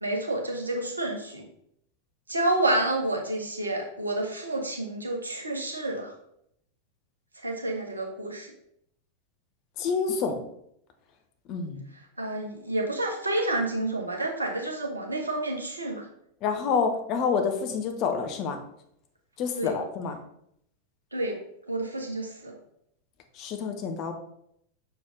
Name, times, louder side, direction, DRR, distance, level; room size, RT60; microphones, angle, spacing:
voice 1, 0.0-1.4 2.3-6.1 7.4-8.5 12.2-16.0 19.6-19.7 21.1-21.4 21.7-22.5, right 1 dB, 80° right, 0 dB, 1.3 m, -29 dB
voice 2, 9.8-10.4 11.5-11.8 16.4-18.6 19.4-20.2 23.4-24.1, left 5 dB, 40° left, 5 dB, 1.0 m, -28 dB
6.3 x 4.5 x 3.9 m, 0.73 s
figure-of-eight pair, 90°, 0 cm